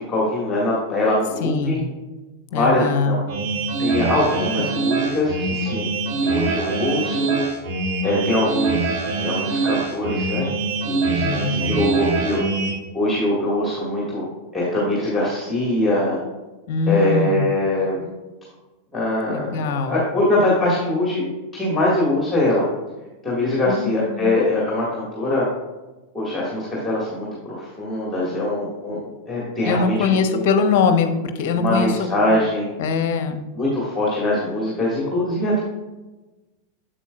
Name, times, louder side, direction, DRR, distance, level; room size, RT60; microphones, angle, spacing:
voice 1, 0.0-1.8 2.5-3.2 3.8-5.9 6.2-7.5 8.0-10.5 10.8-12.4 12.9-14.3 14.5-16.2 16.9-18.1 18.9-21.2 21.5-22.6 23.2-25.5 26.1-29.0 29.3-30.4 31.5-32.7 33.6-35.6, left 1 dB, 10° left, -5 dB, 1.9 m, -22 dB
voice 2, 1.4-1.8 2.5-3.2 11.2-11.7 16.7-17.5 19.3-20.0 23.6-24.3 29.6-32.1 32.8-33.4, left 5 dB, 50° left, 8 dB, 0.7 m, -22 dB
sound 1, 3.3-12.7, right 3 dB, 50° right, 1.2 m, -24 dB
8.2 x 7.5 x 2.4 m, 1.1 s
figure-of-eight pair, 90°, 0 cm